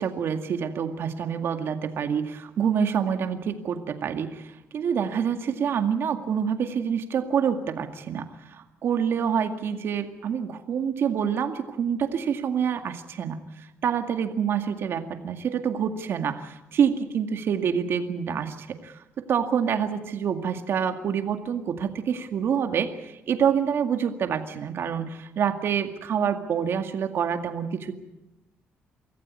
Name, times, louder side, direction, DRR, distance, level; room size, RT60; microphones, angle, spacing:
voice 1, 0.0-27.9, right 7 dB, 65° right, 7 dB, 2.1 m, -27 dB
24.0 x 14.5 x 9.6 m, 0.96 s
cardioid pair, 110°, 5 cm